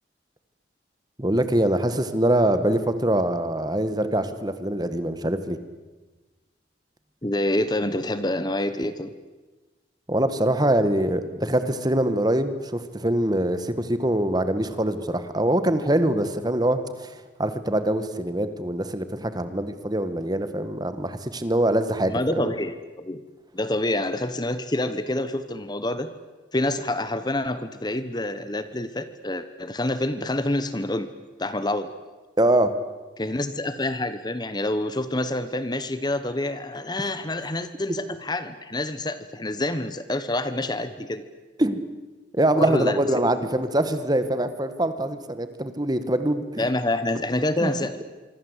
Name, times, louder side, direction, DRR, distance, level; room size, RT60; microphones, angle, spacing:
voice 1, 1.2-5.6 10.1-22.5 32.4-32.7 41.6-41.8 42.3-46.7 47.6-47.7, right 1 dB, 20° right, 11 dB, 1.7 m, -24 dB
voice 2, 7.2-9.1 22.1-23.2 23.5-26.1 26.5-31.1 31.4-31.9 33.2-41.2 42.5-43.0 43.5-43.6 46.6-48.1, left 1 dB, 25° left, 12 dB, 1.1 m, -27 dB
25.5 x 25.0 x 8.2 m, 1.3 s
head